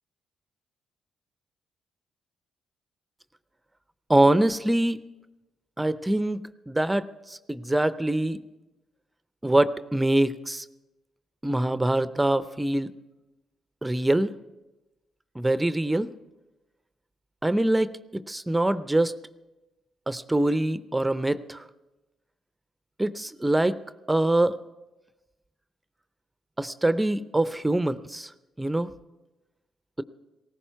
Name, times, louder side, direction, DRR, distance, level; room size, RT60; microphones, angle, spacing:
voice 1, 4.1-5.0 5.8-8.4 9.4-10.6 11.4-12.9 13.8-14.3 15.4-16.1 17.4-17.9 18.3-19.1 20.1-21.6 23.0-23.8 24.1-24.6 26.6-28.3 28.6-28.9, right 1 dB, 15° right, 14 dB, 0.6 m, -24 dB
17.5 x 15.5 x 4.6 m, 1.1 s
hypercardioid pair, 50°, 0 cm